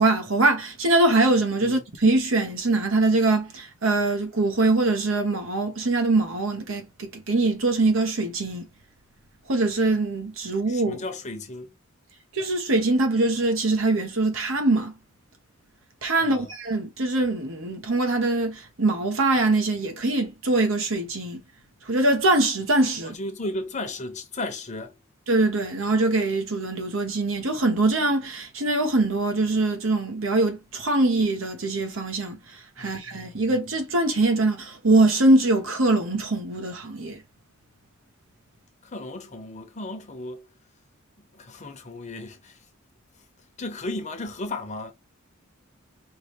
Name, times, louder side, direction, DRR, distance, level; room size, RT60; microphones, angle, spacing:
voice 1, 0.0-8.7 9.5-11.0 12.3-14.9 16.0-21.4 21.8-23.1 25.3-37.2, right 2 dB, 65° right, 1.0 m, -23 dB
voice 2, 10.7-11.7 16.2-16.5 23.0-25.0 32.8-33.5 38.8-40.5 41.3-42.6 43.6-44.9, left 2 dB, 35° left, 1.0 m, -35 dB
4.9 x 3.1 x 3.1 m
head